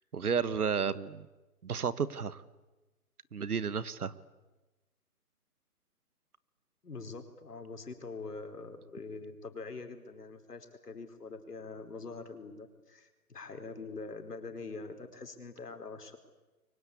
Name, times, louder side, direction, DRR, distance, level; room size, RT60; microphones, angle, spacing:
voice 1, 0.1-1.3 1.6-2.4 3.3-4.1, right 6 dB, 70° right, 16 dB, 1.5 m, -32 dB
voice 2, 6.8-16.2, left 3 dB, 75° left, 6 dB, 4.6 m, -44 dB
28.0 x 23.5 x 8.4 m, 1.1 s
hypercardioid pair, 155°, 46 cm